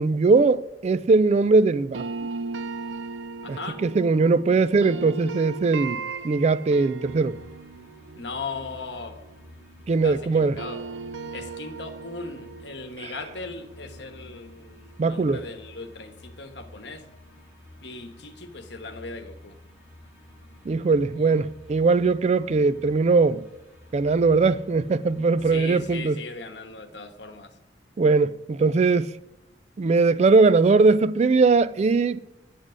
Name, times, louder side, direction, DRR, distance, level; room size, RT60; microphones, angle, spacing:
voice 1, 0.0-2.0 3.5-7.4 9.9-10.6 13.0-13.1 15.0-15.4 20.7-23.4 23.9-26.2 28.0-29.1 29.8-32.2, right 4 dB, 40° right, 0.3 m, -20 dB
sound 1, 1.9-10.0 10.3-15.3, right 4 dB, 90° right, 0.5 m, -38 dB
voice 2, 3.4-3.8 8.2-9.1 10.0-10.8 11.3-14.8 15.1-17.0 17.8-19.6 21.2-21.3 25.5-27.5, left 3 dB, 65° left, 1.2 m, -38 dB
sound 2, 7.0-26.1, left 1 dB, 15° right, 4.3 m, -50 dB
9.9 x 7.4 x 6.4 m
head